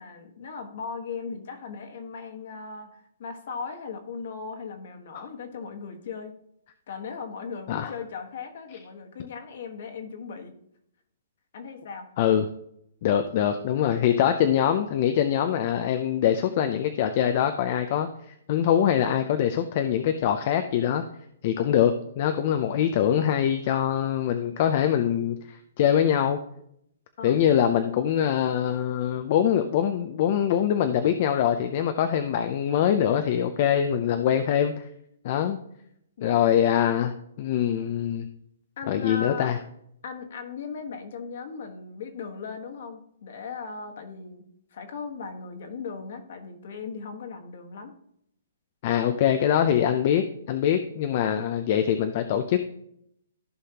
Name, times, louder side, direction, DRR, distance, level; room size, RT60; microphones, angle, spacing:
voice 1, 0.0-6.3 6.9-10.5 11.5-12.1 27.2-27.4 36.2-36.4 38.8-39.5 40.0-47.9, left 5 dB, 45° left, 5 dB, 1.4 m, -38 dB
voice 2, 12.2-12.5 13.0-18.1 18.5-21.0 21.4-26.4 27.2-34.9 35.2-35.6 36.2-38.3 38.9-39.6 48.8-52.7, left 9 dB, 30° left, 8 dB, 0.5 m, -23 dB
14.5 x 5.6 x 2.9 m, 0.74 s
hypercardioid pair, 175°, 0 cm